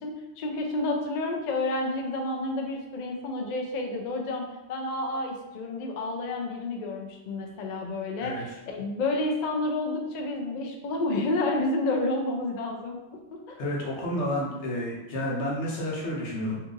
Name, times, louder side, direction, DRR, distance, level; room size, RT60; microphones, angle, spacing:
voice 1, 0.0-13.0 13.3-13.6, left 2 dB, 60° left, 2 dB, 0.5 m, -30 dB
voice 2, 13.6-16.6, left 1 dB, 80° left, -4 dB, 1.1 m, -30 dB
2.7 x 2.5 x 3.7 m, 1.0 s
omnidirectional pair, 1.2 m